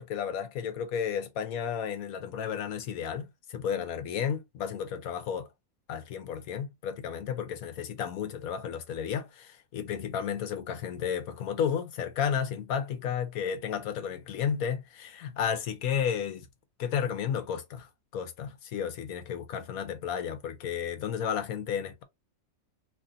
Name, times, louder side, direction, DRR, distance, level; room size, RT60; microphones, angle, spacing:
voice 1, 0.0-5.5 5.9-16.5 16.8-22.0, left 8 dB, 90° left, 1.2 m, -32 dB
3.0 x 2.6 x 3.7 m
omnidirectional pair, 1.5 m